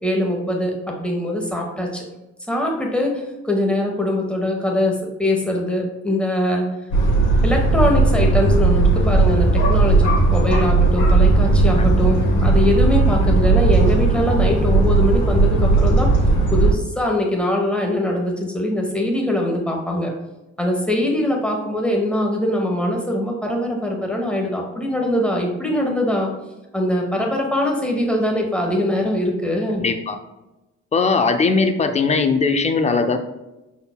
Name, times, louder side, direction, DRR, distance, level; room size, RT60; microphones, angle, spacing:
voice 1, 0.0-2.0 2.5-6.7 7.4-16.1 16.5-20.1 20.6-26.3 26.7-29.8, left 1 dB, 5° left, 0 dB, 1.2 m, -22 dB
sound 1, 6.9-16.7, right 3 dB, 70° left, 1.4 m, -16 dB
voice 2, 29.8-30.2 30.9-33.2, left 4 dB, 25° left, 7 dB, 0.5 m, -19 dB
5.2 x 4.2 x 2.2 m, 1.0 s
cardioid pair, 90°, 30 cm